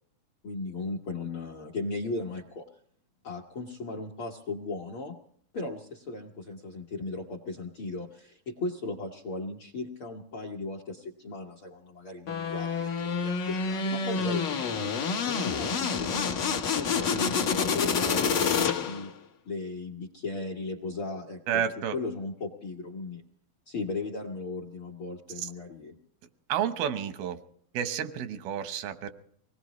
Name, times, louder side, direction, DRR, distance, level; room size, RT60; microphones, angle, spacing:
voice 1, 0.4-2.7 3.2-5.1 5.5-14.4 15.2-19.1 19.4-21.6 21.9-23.2 23.7-26.0, left 3 dB, 55° left, 6 dB, 1.4 m, -36 dB
sound 1, 12.3-19.1, left 5 dB, 75° left, 1.0 m, -28 dB
voice 2, 21.5-22.0 25.4-25.5 26.5-27.4 27.7-29.1, right 9 dB, 85° right, 9 dB, 2.9 m, -30 dB
24.5 x 19.0 x 3.1 m, 0.63 s
omnidirectional pair, 4.2 m